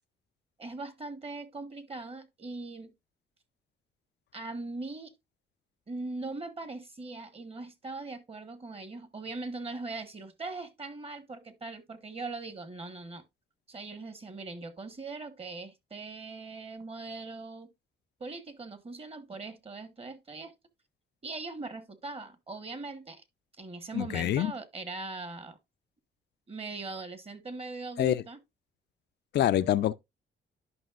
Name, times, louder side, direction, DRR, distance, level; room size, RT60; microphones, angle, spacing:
voice 1, 0.6-2.9 4.3-5.2 5.9-13.2 13.7-17.7 18.2-20.5 21.2-23.2 23.6-25.6 26.5-28.4, right 3 dB, 30° right, 1.4 m, -40 dB
voice 2, 23.9-24.5 28.0-28.2 29.3-29.9, left 12 dB, 60° left, 0.5 m, -26 dB
11.0 x 5.5 x 2.5 m
cardioid pair, 90°, 20 cm